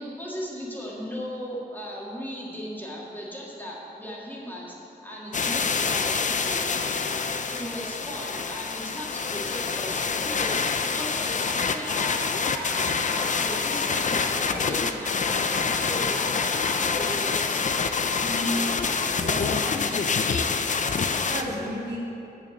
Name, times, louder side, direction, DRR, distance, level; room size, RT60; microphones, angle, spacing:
voice 1, 0.0-6.6 7.5-12.2 12.5-17.6, equal, 10° left, -5 dB, 1.7 m, -37 dB
sound 1, 5.3-21.4, left 5 dB, 45° left, 0.4 m, -26 dB
voice 2, 18.2-18.7 19.1-20.1 21.3-22.0, equal, 80° right, -6 dB, 2.1 m, -33 dB
6.8 x 5.8 x 7.5 m, 2.9 s
wide cardioid pair, 105°, 18 cm